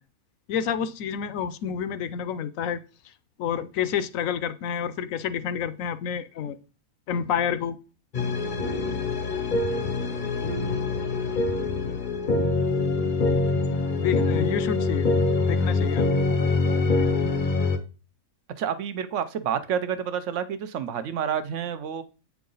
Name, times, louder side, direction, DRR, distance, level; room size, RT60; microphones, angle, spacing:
voice 1, 0.5-2.8 3.4-6.6 7.1-7.8 14.0-15.1 15.5-16.1, left 8 dB, 70° left, 0.9 m, -29 dB
sound 1, 8.1-17.8, left 3 dB, 45° left, 0.7 m, -24 dB
voice 2, 18.6-22.0, right 8 dB, 65° right, 0.9 m, -29 dB
8.3 x 4.8 x 3.9 m
omnidirectional pair, 1.5 m